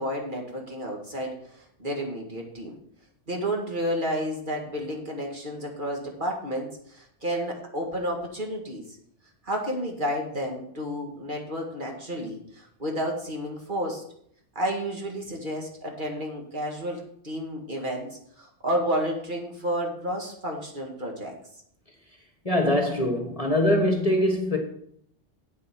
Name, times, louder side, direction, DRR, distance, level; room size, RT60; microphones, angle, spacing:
voice 1, 0.0-2.8 3.3-8.8 9.4-14.0 14.6-21.3, equal, 40° right, 2.0 m, -31 dB
voice 2, 22.4-24.6, left 1 dB, 30° left, 1.3 m, -23 dB
8.7 x 7.6 x 5.9 m
omnidirectional pair, 1.3 m